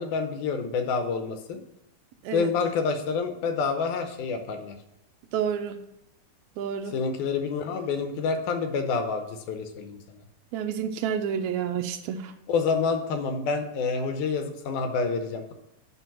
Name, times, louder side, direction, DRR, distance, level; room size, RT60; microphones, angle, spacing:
voice 1, 0.0-1.6 2.3-4.8 6.9-10.0 12.5-15.5, left 5 dB, 80° left, 6 dB, 2.2 m, -28 dB
voice 2, 5.3-5.8 6.6-6.9 10.5-12.3, right 8 dB, 85° right, 7 dB, 1.6 m, -29 dB
9.2 x 3.3 x 5.7 m, 0.81 s
omnidirectional pair, 3.7 m